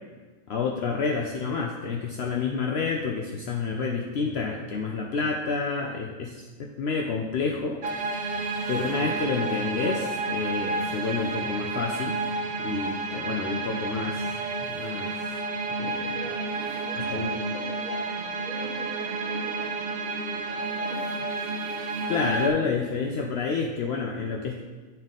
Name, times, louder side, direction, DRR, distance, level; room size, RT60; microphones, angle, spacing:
voice 1, 0.5-7.8 8.7-12.2 12.6-14.3 14.6-15.1 15.8-16.0 17.0-17.4 22.1-24.6, left 4 dB, 65° left, 1 dB, 0.7 m, -29 dB
sound 1, 7.8-22.5, right 3 dB, 60° right, 0.6 m, -31 dB
voice 2, 8.3-8.7 13.1-13.4 15.8-21.3, right 1 dB, 45° right, -2 dB, 1.2 m, -42 dB
7.9 x 3.6 x 3.7 m, 1.3 s
omnidirectional pair, 1.3 m